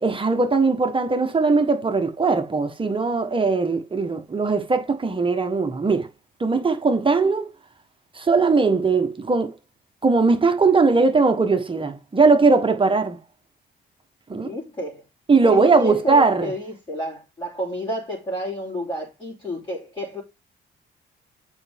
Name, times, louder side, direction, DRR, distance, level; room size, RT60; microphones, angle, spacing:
voice 1, 0.0-6.1 6.4-7.5 8.1-9.5 10.0-13.2 14.3-14.5 15.3-16.5, right 4 dB, 25° right, 1.3 m, -19 dB
voice 2, 14.3-15.0 15.4-20.2, equal, 25° left, 3.3 m, -30 dB
7.0 x 5.2 x 3.5 m
cardioid pair, 90°, 20 cm